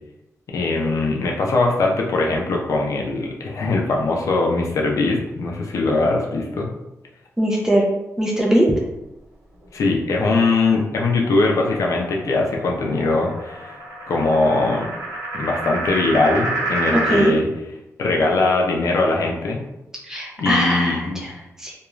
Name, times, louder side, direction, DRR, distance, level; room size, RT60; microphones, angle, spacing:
voice 1, 0.5-6.7 9.7-13.8 14.1-14.9 15.3-17.5 18.0-19.6 20.4-21.3, left 3 dB, 65° left, 0 dB, 0.5 m, -21 dB
voice 2, 7.4-7.9 8.2-8.7 16.9-17.4 20.1-21.3 21.6-21.7, equal, 10° right, -3 dB, 0.5 m, -20 dB
sound 1, 10.7-17.3, right 2 dB, 90° right, 0.7 m, -29 dB
2.4 x 2.2 x 3.0 m, 0.92 s
wide cardioid pair, 180°, 6 cm